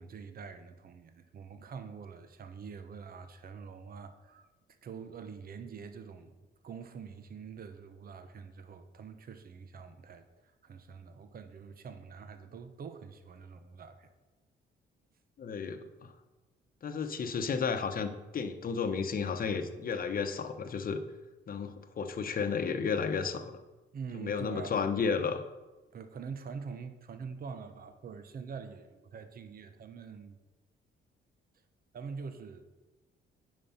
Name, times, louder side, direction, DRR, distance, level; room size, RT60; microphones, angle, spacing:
voice 1, 0.0-4.5 4.8-6.4 6.6-14.1 23.9-24.8 25.9-30.4 31.9-32.6, right 5 dB, 50° right, 0.9 m, -45 dB
voice 2, 15.4-16.1 16.8-21.0 21.5-23.6 24.1-25.4, left 5 dB, 45° left, 0.9 m, -33 dB
9.3 x 5.3 x 5.8 m
cardioid pair, 90°, 20 cm